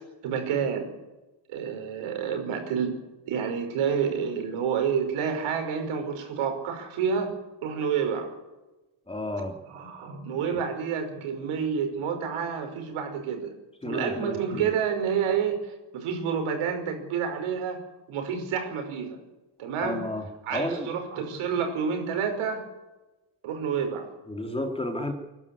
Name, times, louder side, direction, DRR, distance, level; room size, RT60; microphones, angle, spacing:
voice 1, 0.2-0.9 1.5-2.9 3.3-7.3 7.6-8.3 9.7-13.5 13.8-17.8 18.1-19.2 19.6-20.0 20.4-22.7 23.4-24.1, right 7 dB, 90° right, 5 dB, 5.7 m, -29 dB
voice 2, 9.1-9.5 13.8-14.7 19.8-20.2 20.5-20.9 24.3-25.1, left 1 dB, 10° left, 4 dB, 3.0 m, -31 dB
23.5 x 12.0 x 9.8 m, 1.1 s
cardioid pair, 125°, 48 cm